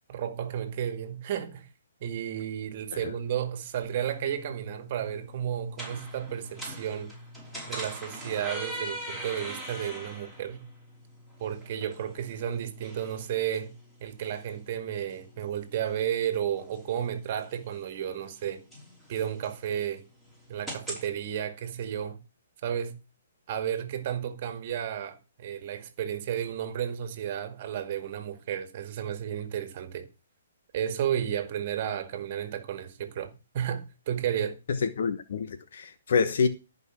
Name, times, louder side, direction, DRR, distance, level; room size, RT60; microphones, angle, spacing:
voice 1, 0.1-1.7 2.0-7.1 7.7-10.6 11.4-13.7 14.0-18.6 19.1-20.0 20.5-22.2 22.6-23.0 23.5-30.1 30.7-34.6, right 9 dB, 45° right, 1.9 m, -32 dB
sound 1, 3.8-21.1, right 1 dB, 5° left, 5.9 m, -43 dB
voice 2, 34.8-36.5, left 5 dB, 65° left, 1.2 m, -27 dB
14.0 x 5.4 x 6.3 m
hypercardioid pair, 145°, 0 cm